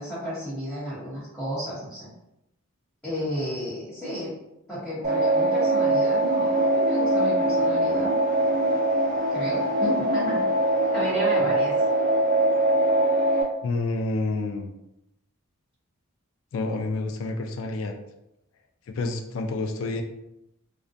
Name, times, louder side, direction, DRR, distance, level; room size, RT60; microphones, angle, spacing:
voice 1, 0.0-2.1 3.0-4.3 4.7-8.1 9.3-10.4 10.9-11.7, equal, 5° left, -13 dB, 0.8 m, -32 dB
sound 1, 5.0-13.4, right 1 dB, 35° right, 0.6 m, -22 dB
voice 2, 13.6-14.7 16.5-18.0 18.9-20.0, left 2 dB, 60° left, 5 dB, 0.3 m, -28 dB
2.4 x 2.1 x 2.5 m, 0.84 s
head